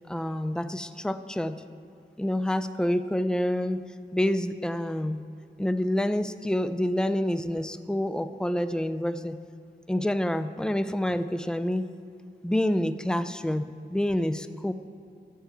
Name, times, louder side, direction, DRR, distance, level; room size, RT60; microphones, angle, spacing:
voice 1, 0.1-1.6 2.2-5.2 5.6-9.4 9.9-11.9 12.4-14.7, left 1 dB, 5° left, 11 dB, 0.3 m, -28 dB
14.0 x 4.7 x 7.8 m, 2.5 s
wide cardioid pair, 110°, 18 cm